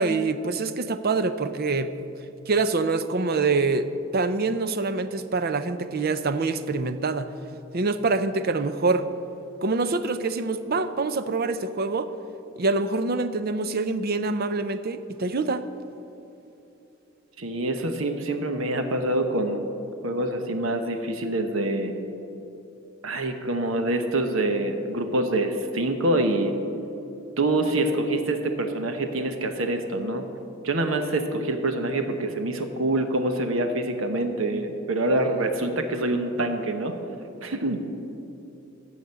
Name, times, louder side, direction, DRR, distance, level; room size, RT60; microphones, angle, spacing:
voice 1, 0.0-1.9 2.5-7.3 7.7-9.1 9.6-12.1 12.6-15.6, right 3 dB, 50° right, 11 dB, 0.6 m, -25 dB
voice 2, 17.4-19.7 20.0-21.9 23.0-26.6 27.4-30.3 30.6-37.0 37.4-37.8, right 2 dB, 75° right, 6 dB, 1.0 m, -26 dB
14.5 x 5.0 x 8.0 m, 2.9 s
head